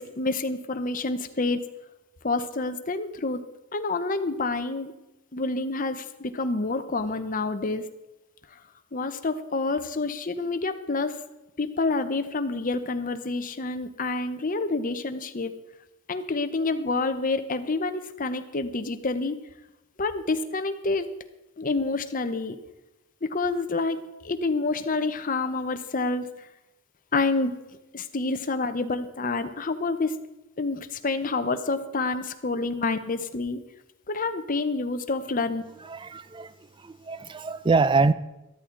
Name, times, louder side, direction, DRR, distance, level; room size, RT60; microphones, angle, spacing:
voice 1, 0.0-1.6 2.2-3.4 3.7-4.9 5.3-7.8 8.9-11.1 11.6-15.5 16.1-19.4 20.0-21.1 21.6-22.6 23.2-26.3 27.1-27.6 27.9-30.2 30.6-33.6 34.1-35.6, left 3 dB, 40° left, 0.8 m, -28 dB
voice 2, 35.8-38.1, right 4 dB, 25° right, 0.4 m, -25 dB
13.0 x 13.0 x 3.8 m
head